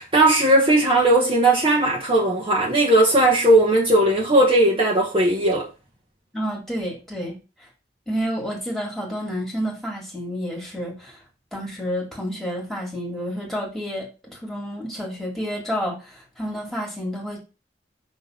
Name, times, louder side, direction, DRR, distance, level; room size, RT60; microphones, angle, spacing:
voice 1, 0.0-5.7, right 1 dB, 30° right, 1.2 m, -17 dB
voice 2, 6.3-7.7 8.1-11.2 11.5-17.4, equal, ahead, 2.0 m, -30 dB
5.7 x 3.5 x 5.3 m
head